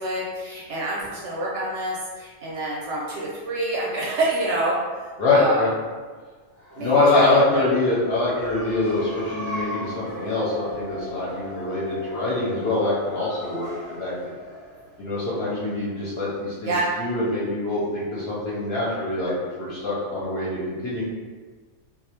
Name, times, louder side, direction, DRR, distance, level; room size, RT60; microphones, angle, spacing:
voice 1, 0.0-5.6 6.7-7.6 16.6-16.8, right 2 dB, 65° right, -5 dB, 0.8 m, -27 dB
voice 2, 5.2-5.7 6.8-14.3 15.0-16.7 17.0-19.3 19.6-21.0, left 2 dB, 60° left, -7 dB, 0.7 m, -24 dB
sound 1, 6.5-16.0, left 2 dB, 20° right, 0.4 m, -37 dB
2.4 x 2.0 x 2.8 m, 1.4 s
omnidirectional pair, 1.4 m